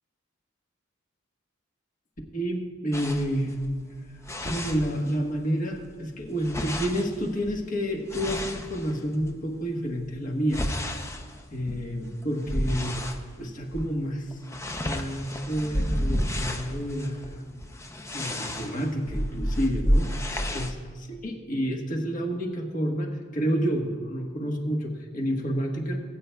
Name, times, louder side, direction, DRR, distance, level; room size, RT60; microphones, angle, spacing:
voice 1, 2.3-3.6 4.4-10.6 11.5-13.0 13.4-14.4 14.8-17.4 18.1-20.1 20.3-26.0, equal, 40° left, 2 dB, 1.3 m, -29 dB
sound 1, 2.9-5.4 5.7-9.4 9.9-13.2 13.7-13.9 14.2-20.7, equal, 15° left, 0.6 m, -31 dB
20.0 x 8.9 x 2.3 m, 1.5 s
head